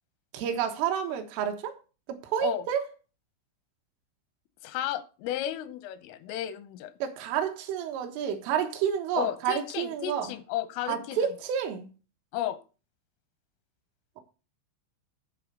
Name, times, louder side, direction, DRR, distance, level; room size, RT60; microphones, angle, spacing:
voice 1, 0.3-1.8 2.1-2.8 7.0-10.3 10.9-11.9, right 8 dB, 80° right, 3.8 m, -30 dB
voice 2, 4.6-6.9 9.2-11.2 12.3-12.6, left 12 dB, 85° left, 3.5 m, -33 dB
11.0 x 4.3 x 6.7 m
omnidirectional pair, 5.7 m